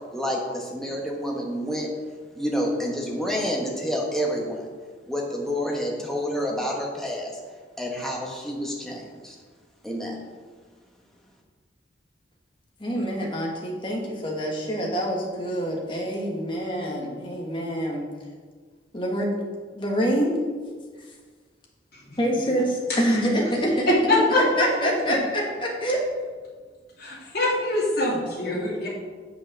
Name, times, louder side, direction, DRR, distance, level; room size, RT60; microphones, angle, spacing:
voice 1, 0.1-1.9 2.3-4.7 5.1-7.3 7.8-9.3 9.8-10.2, equal, ahead, -1 dB, 1.3 m, -28 dB
voice 2, 12.8-18.0 18.9-19.3 19.7-20.4 22.2-23.9 24.6-26.0, equal, 25° left, -1 dB, 1.7 m, -26 dB
voice 3, 24.1-24.6 27.0-28.9, left 2 dB, 60° left, -5 dB, 2.9 m, -24 dB
7.6 x 5.9 x 6.2 m, 1.5 s
head